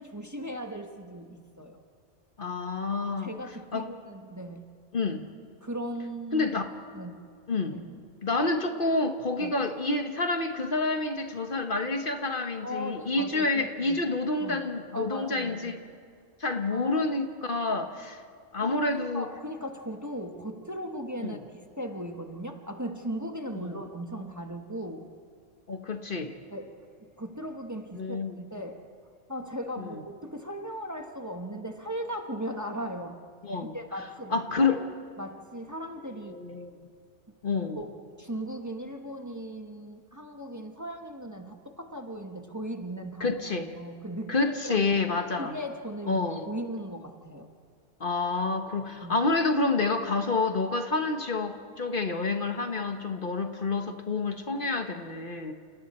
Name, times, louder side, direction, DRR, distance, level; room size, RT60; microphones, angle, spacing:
voice 1, 0.0-1.8 3.0-4.7 5.6-6.5 6.9-7.3 7.7-8.1 9.4-9.6 12.6-14.0 14.4-14.6 14.9-15.8 16.7-17.0 18.6-25.1 26.5-28.9 29.3-33.2 33.6-34.8 35.2-36.4 37.3-37.4 37.7-45.0 45.4-47.5 49.0-49.2 54.5-54.7, equal, 15° right, 4 dB, 1.2 m, -38 dB
voice 2, 2.4-3.3 3.7-3.9 4.9-5.2 6.3-6.7 7.5-7.8 8.2-15.8 16.4-18.2 18.5-19.3 23.6-23.7 25.7-26.3 28.0-28.3 29.8-29.9 33.4-33.7 34.3-34.8 36.3-36.7 37.4-37.8 43.2-43.7 44.3-45.6 46.1-46.5 48.0-55.5, left 3 dB, 50° left, 6 dB, 1.3 m, -28 dB
30.0 x 29.5 x 4.3 m, 2.2 s
omnidirectional pair, 1.2 m